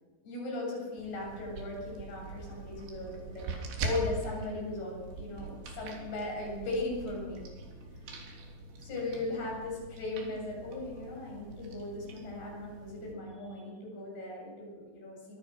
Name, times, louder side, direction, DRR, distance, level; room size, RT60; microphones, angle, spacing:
voice 1, 0.2-7.5 8.8-15.4, left 2 dB, 55° left, -1 dB, 9.6 m, -38 dB
sound 1, 1.0-13.1, right 2 dB, 65° right, 5.5 m, -42 dB
24.5 x 20.5 x 6.3 m, 1.3 s
omnidirectional pair, 5.6 m